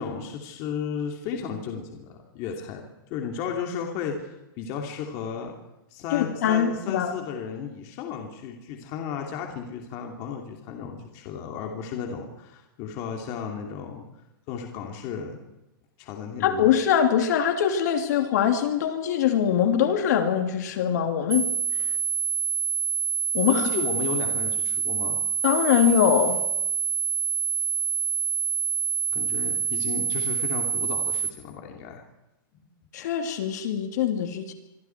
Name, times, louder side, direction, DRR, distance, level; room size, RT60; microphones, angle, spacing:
voice 1, 0.0-2.8 3.1-5.5 5.9-14.0 14.5-15.4 16.0-16.8 23.5-25.2 29.1-32.0, left 7 dB, 25° left, 2 dB, 2.6 m, -34 dB
voice 2, 6.1-7.1 16.4-21.5 23.3-23.7 25.4-26.4 32.9-34.5, left 9 dB, 50° left, 5 dB, 2.9 m, -23 dB
sound 1, 21.3-31.3, right 6 dB, 90° right, 2.0 m, -26 dB
26.0 x 24.0 x 4.6 m, 0.93 s
hypercardioid pair, 175°, 12 cm